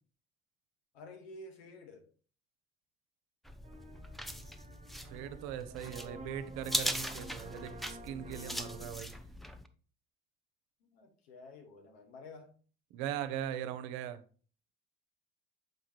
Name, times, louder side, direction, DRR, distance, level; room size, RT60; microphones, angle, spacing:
voice 1, 0.9-2.1 10.8-12.6, left 2 dB, 75° left, 1.2 m, -51 dB
sound 1, 3.5-9.7, equal, ahead, 0.5 m, -40 dB
sound 2, 3.6-9.2, right 2 dB, 20° right, 1.2 m, -49 dB
voice 2, 5.1-9.1 12.9-14.2, right 10 dB, 60° right, 0.7 m, -40 dB
6.5 x 4.9 x 3.0 m
figure-of-eight pair, 50°, 32 cm